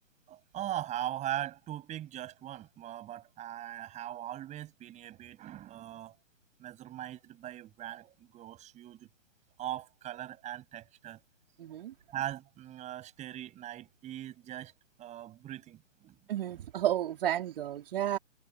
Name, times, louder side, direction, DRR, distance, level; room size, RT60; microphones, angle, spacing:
voice 1, 0.3-6.1 6.6-9.1 9.6-11.2 12.1-14.7 15.0-16.2 16.6-16.7, right 13 dB, 20° right, 6.8 m, -40 dB
voice 2, 11.6-11.9 16.3-18.2, right 12 dB, 45° right, 3.7 m, -32 dB
figure-of-eight pair, 130°, 39 cm